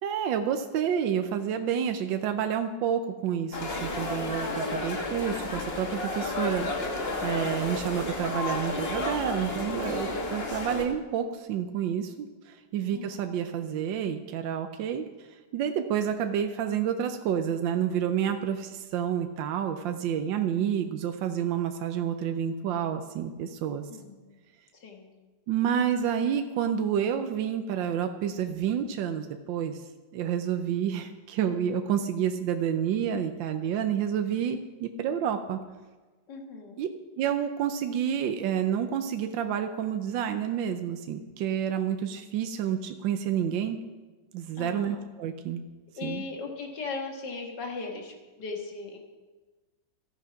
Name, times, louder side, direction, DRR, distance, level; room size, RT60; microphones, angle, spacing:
voice 1, 0.0-15.1 15.5-23.9 25.5-29.8 30.1-35.6 36.8-36.9 37.2-43.8 44.3-45.6 46.0-46.2, right 8 dB, 85° right, 7 dB, 1.5 m, -29 dB
sound 1, 3.5-10.8, left 2 dB, 35° left, 1.5 m, -32 dB
voice 2, 12.9-13.2 23.9-24.4 24.7-25.2 36.3-36.8 44.6-45.0 45.9-49.0, left 4 dB, 65° left, 2 dB, 2.2 m, -38 dB
14.0 x 8.7 x 5.8 m, 1.3 s
omnidirectional pair, 2.0 m